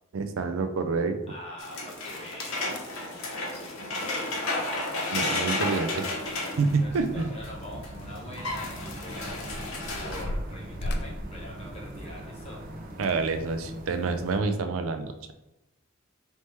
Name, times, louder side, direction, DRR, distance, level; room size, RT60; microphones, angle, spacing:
voice 1, 0.1-1.2 5.1-6.1 6.6-7.3 13.0-15.3, right 4 dB, 85° right, 8 dB, 0.4 m, -28 dB
voice 2, 1.3-4.4 5.9-12.6, left 1 dB, 30° left, -3 dB, 1.0 m, -44 dB
sound 1, 1.6-7.5 7.8-10.2, left 2 dB, 90° left, 1.0 m, -32 dB
sound 2, 2.7-3.1 4.8-4.9 5.1-5.3 5.6-7.4 7.7-7.9 8.6-12.3 12.9-13.2 13.8-13.9, left 1 dB, 50° left, 0.4 m, -37 dB
sound 3, 6.5-14.4, right 1 dB, 45° right, 0.6 m, -41 dB
3.4 x 3.0 x 4.3 m, 0.95 s
head